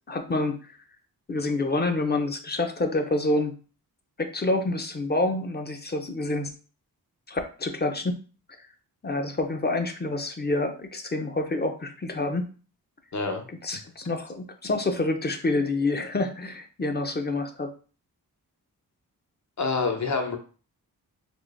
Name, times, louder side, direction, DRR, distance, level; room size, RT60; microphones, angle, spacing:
voice 1, 0.1-0.7 1.3-3.5 4.2-6.5 7.3-8.2 8.6-8.7 9.0-12.5 13.6-17.7, left 2 dB, 25° left, 6 dB, 0.6 m, -27 dB
voice 2, 13.1-13.5 19.6-20.4, left 4 dB, 50° left, 4 dB, 0.9 m, -27 dB
3.6 x 2.6 x 2.5 m, 0.38 s
cardioid pair, 60°, 37 cm